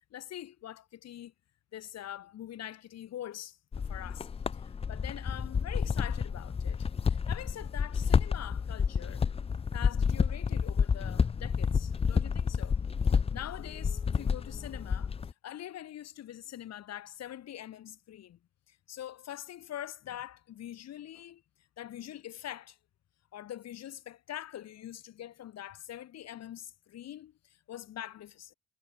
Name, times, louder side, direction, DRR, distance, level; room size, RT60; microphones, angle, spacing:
voice 1, 0.1-1.3 1.7-9.2 9.7-12.8 13.0-18.4 18.7-21.4 21.8-22.8 23.3-28.5, left 12 dB, 60° left, 0.9 m, -44 dB
sound 1, 3.7-15.3, left 6 dB, 20° left, 0.3 m, -30 dB
cardioid pair, 90°, 30 cm